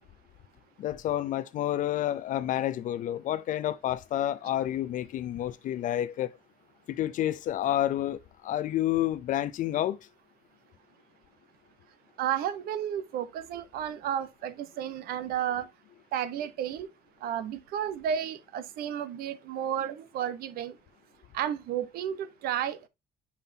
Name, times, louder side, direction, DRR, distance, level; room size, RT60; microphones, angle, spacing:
voice 1, 0.8-6.3 6.9-10.0, left 12 dB, 55° left, 0.5 m, -29 dB
voice 2, 12.2-15.7 16.1-16.9 17.2-20.7 21.3-22.9, right 9 dB, 75° right, 0.9 m, -32 dB
7.4 x 5.5 x 2.7 m
cardioid pair, 140°, 16 cm